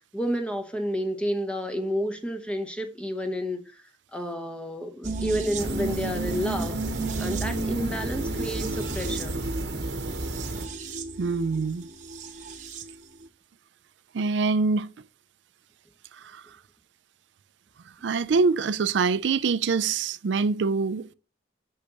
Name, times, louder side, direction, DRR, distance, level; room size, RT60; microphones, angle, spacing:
voice 1, 0.1-6.8 7.2-9.3, equal, 5° left, 1.0 m, -30 dB
sound 1, 5.0-12.9 13.2-13.3, right 2 dB, 40° right, 1.0 m, -33 dB
sound 2, 5.6-10.7, right 2 dB, 70° right, 1.0 m, -34 dB
voice 2, 11.2-11.9 14.1-14.9 16.1-16.6 18.0-21.1, right 4 dB, 85° right, 0.4 m, -25 dB
8.4 x 6.6 x 3.0 m
head